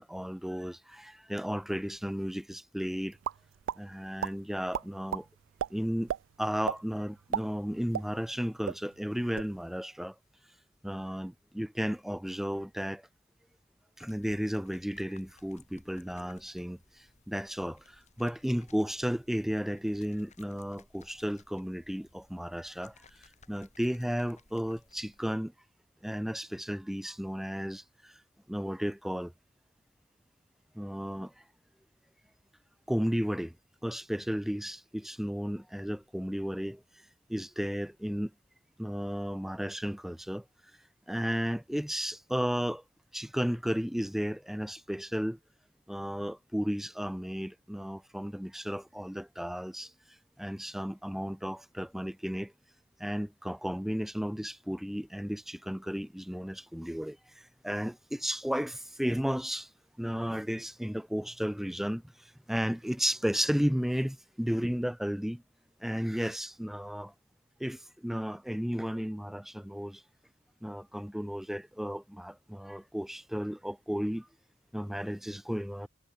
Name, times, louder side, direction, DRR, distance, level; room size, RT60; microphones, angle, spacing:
voice 1, 0.0-3.2 3.8-5.3 5.7-6.1 6.4-10.2 10.8-13.1 14.0-25.5 26.0-28.2 28.5-29.3 30.7-31.3 32.9-33.6 33.8-36.8 37.3-38.3 38.8-40.4 41.1-42.8 43.1-45.4 45.9-49.9 50.4-52.5 53.0-59.7 60.0-65.4 65.8-67.1 67.6-70.0 70.6-74.3 74.7-75.9, equal, ahead, 0.4 m, -34 dB
sound 1, 3.2-3.8 4.2-4.3 4.7-5.2 5.6-5.7 6.1-6.2 6.7-6.8 7.2-8.4 8.6-8.8 9.2-9.5, right 9 dB, 85° right, 0.3 m, -32 dB
sound 2, 14.0-25.3, left 3 dB, 40° left, 6.2 m, -61 dB
head